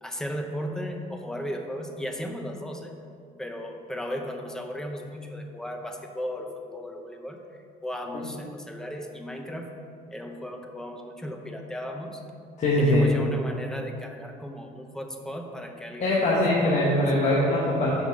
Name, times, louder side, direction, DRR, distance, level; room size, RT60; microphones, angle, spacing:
voice 1, 0.0-2.9 3.4-7.4 7.8-9.7 10.1-12.2 12.8-16.2 16.6-17.4, equal, 5° left, 3 dB, 0.7 m, -36 dB
voice 2, 12.6-13.1 16.0-18.0, left 1 dB, 45° left, -6 dB, 1.2 m, -22 dB
5.2 x 5.0 x 6.3 m, 2.4 s
cardioid pair, 110°, 17 cm